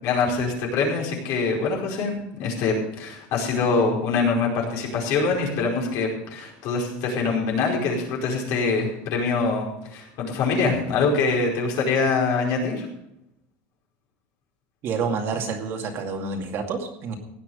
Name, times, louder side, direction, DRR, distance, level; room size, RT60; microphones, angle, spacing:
voice 1, 0.0-12.8, left 4 dB, 55° left, -1 dB, 4.8 m, -24 dB
voice 2, 14.8-17.2, right 5 dB, 40° right, 2 dB, 2.3 m, -28 dB
17.0 x 10.0 x 5.2 m, 0.82 s
cardioid pair, 155°, 6 cm